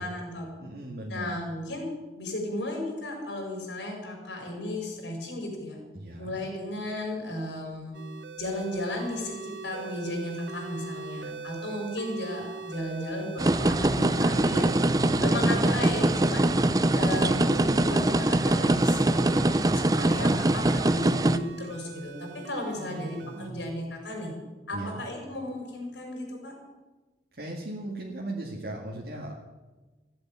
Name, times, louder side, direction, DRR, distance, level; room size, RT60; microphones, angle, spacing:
voice 1, 0.0-0.5 1.1-1.9 2.2-5.8 6.2-8.0 8.4-16.5 16.9-19.4 19.7-24.3 24.7-26.5, left 1 dB, 85° left, 1 dB, 5.7 m, -34 dB
voice 2, 0.6-1.3 5.9-6.4 15.0-15.7 20.3-20.5 22.8-23.6 24.7-25.0 27.3-29.3, right 1 dB, 60° right, -2 dB, 2.0 m, -38 dB
sound 1, 7.9-23.5, right 4 dB, 85° right, 0.9 m, -42 dB
sound 2, 13.4-21.4, right 1 dB, 20° right, 0.5 m, -23 dB
15.5 x 8.7 x 9.3 m, 1.2 s
head